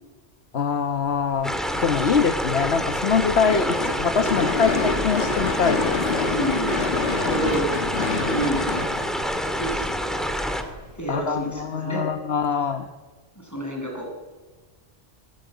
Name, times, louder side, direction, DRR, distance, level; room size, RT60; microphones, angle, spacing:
voice 1, 0.5-6.0 11.1-12.9, left 6 dB, 90° left, 6 dB, 1.4 m, -24 dB
sound 1, 0.7-11.6, right 1 dB, 90° right, 5.7 m, -42 dB
sound 2, 1.4-10.6, equal, ahead, 2.4 m, -27 dB
Gunshot gunfire / Fireworks, 3.5-9.8, left 4 dB, 65° left, 2.1 m, -27 dB
voice 2, 6.3-7.7 8.2-8.9 9.5-10.3 11.0-12.1 12.6-12.7 13.4-14.1, right 1 dB, 15° left, 0 dB, 7.5 m, -30 dB
24.0 x 20.0 x 9.3 m, 1.3 s
omnidirectional pair, 1.0 m